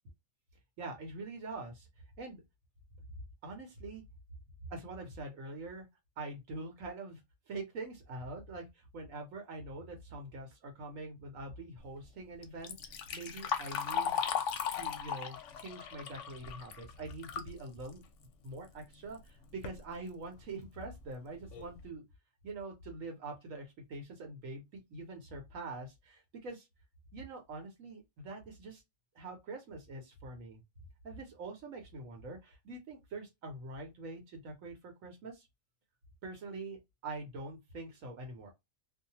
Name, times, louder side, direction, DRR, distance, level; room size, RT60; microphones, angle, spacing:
voice 1, 0.8-1.9 2.2-2.4 3.4-4.0 4.7-5.9 6.2-7.2 7.5-14.2 14.8-18.0 18.4-22.0 22.4-26.7 27.1-28.8 29.1-30.6 31.0-35.5 36.2-38.5, right 2 dB, 75° right, 1.2 m, -44 dB
Liquid, 12.4-17.5 17.9-18.0 18.9-19.0 19.4-19.8 20.4-20.5 21.0-21.1 21.5-21.8, left 7 dB, 70° left, 0.9 m, -37 dB
2.7 x 2.1 x 2.8 m
omnidirectional pair, 1.4 m